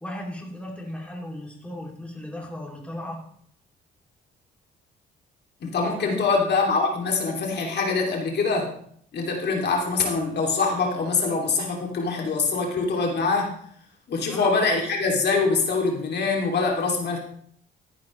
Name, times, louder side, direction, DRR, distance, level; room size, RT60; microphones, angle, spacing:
voice 1, 0.0-3.3 5.8-6.2 14.3-14.6, left 1 dB, 5° left, -1 dB, 2.8 m, -36 dB
voice 2, 5.6-8.7 9.1-13.5 14.1-17.2, left 4 dB, 55° left, 0 dB, 2.7 m, -24 dB
13.5 x 10.5 x 3.2 m, 0.64 s
cardioid pair, 90°, 20 cm